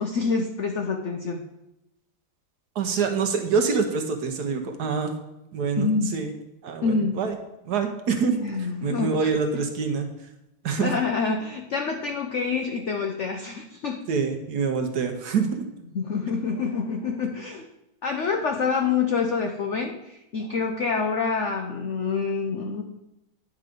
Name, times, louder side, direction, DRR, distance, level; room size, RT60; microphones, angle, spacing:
voice 1, 0.0-1.4 5.8-6.1 6.8-7.2 8.4-9.3 10.8-14.0 15.9-17.7 18.0-22.8, left 5 dB, 80° left, 3 dB, 0.6 m, -27 dB
voice 2, 2.7-5.1 5.5-6.3 6.6-7.4 7.7-8.3 8.8-10.1 10.6-10.9 14.1-15.7, right 5 dB, 60° right, 5 dB, 1.3 m, -25 dB
9.9 x 4.8 x 5.2 m, 0.91 s
omnidirectional pair, 2.1 m